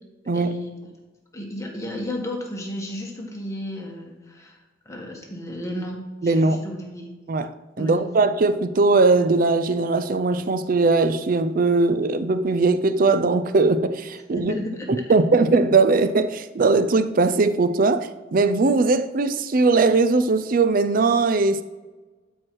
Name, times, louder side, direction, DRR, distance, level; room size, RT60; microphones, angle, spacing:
voice 1, 0.3-0.7 1.3-4.6 4.8-7.1 7.8-8.1 14.5-14.9, left 1 dB, 15° left, 1.5 m, -33 dB
voice 2, 6.2-6.6 7.3-7.5 7.8-14.5 14.9-21.6, right 3 dB, 50° right, 0.5 m, -20 dB
12.5 x 4.5 x 4.6 m
head